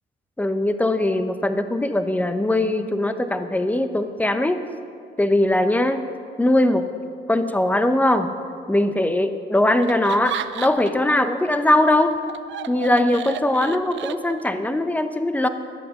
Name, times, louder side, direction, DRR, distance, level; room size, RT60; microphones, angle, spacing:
voice 1, 0.4-4.6 5.2-6.1 6.4-6.8 7.3-8.3 8.7-12.2 12.7-15.5, left 1 dB, 10° left, 9 dB, 0.8 m, -20 dB
Laughter, 9.8-11.1 11.5-14.7, right 11 dB, 70° right, 0.5 m, -34 dB
12.0 x 8.4 x 6.4 m, 2.3 s
cardioid pair, 90°, 20 cm